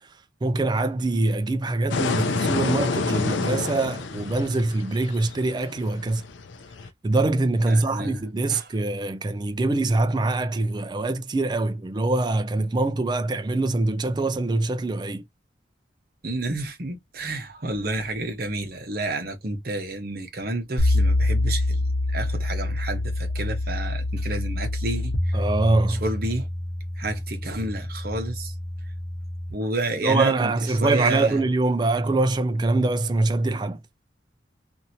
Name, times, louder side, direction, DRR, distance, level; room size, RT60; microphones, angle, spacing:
voice 1, 0.4-6.2 7.0-15.2 25.3-26.0 30.0-33.8, right 2 dB, 25° right, 0.3 m, -24 dB
sound 1, 1.9-6.9, left 4 dB, 90° left, 0.5 m, -29 dB
voice 2, 7.7-8.2 8.5-8.7 16.2-25.4 25.9-26.5 27.0-28.5 29.5-31.4, right 2 dB, 55° right, 0.9 m, -30 dB
sound 2, 20.8-29.5, left 1 dB, 60° left, 1.0 m, -26 dB
2.8 x 2.6 x 2.7 m
head